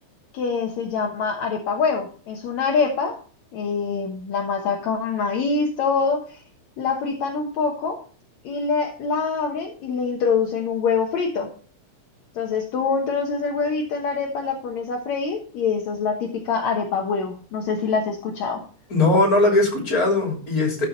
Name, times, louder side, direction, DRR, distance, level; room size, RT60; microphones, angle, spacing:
voice 1, 0.3-3.2 3.5-6.4 6.8-8.0 8.4-11.5 12.3-18.6, left 5 dB, 65° left, 1 dB, 2.4 m, -25 dB
voice 2, 18.9-20.9, left 2 dB, 25° left, 1 dB, 3.6 m, -19 dB
13.0 x 6.3 x 4.0 m, 0.41 s
omnidirectional pair, 3.6 m